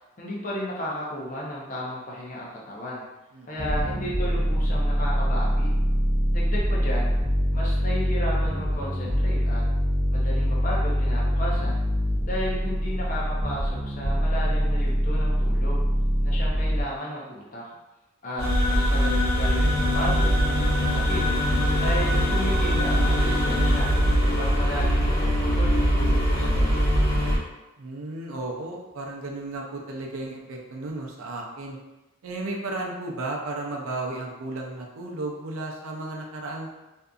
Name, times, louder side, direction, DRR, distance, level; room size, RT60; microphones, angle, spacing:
voice 1, 0.2-3.0 3.5-5.7 6.3-7.1 7.5-9.6 10.1-11.8 12.2-15.8 16.2-17.7 18.2-21.2 21.7-23.9 24.4-26.9, equal, 35° left, -5 dB, 0.6 m, -34 dB
voice 2, 3.3-3.9 27.8-31.8 32.2-36.7, right 2 dB, 75° right, 0 dB, 0.5 m, -34 dB
sound 1, 3.6-16.8, equal, 20° right, 0.6 m, -24 dB
sound 2, 18.4-27.4, equal, 80° left, 1.1 m, -22 dB
2.6 x 2.4 x 2.3 m, 1.0 s
head